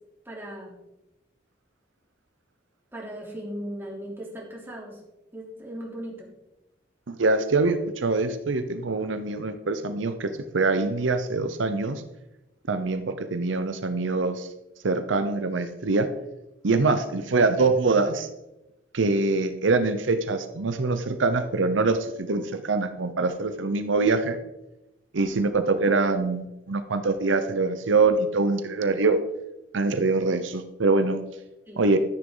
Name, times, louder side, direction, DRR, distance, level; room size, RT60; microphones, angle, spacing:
voice 1, 0.2-0.8 2.9-5.0 5.3-6.3 31.7-31.8, equal, 10° right, -3 dB, 3.3 m, -37 dB
voice 2, 7.1-12.0 12.7-14.5 14.8-16.1 16.6-18.3 18.9-24.4 25.1-29.2 29.7-31.2 31.8-32.0, right 3 dB, 75° right, 9 dB, 0.7 m, -24 dB
13.0 x 10.0 x 3.9 m, 0.94 s
head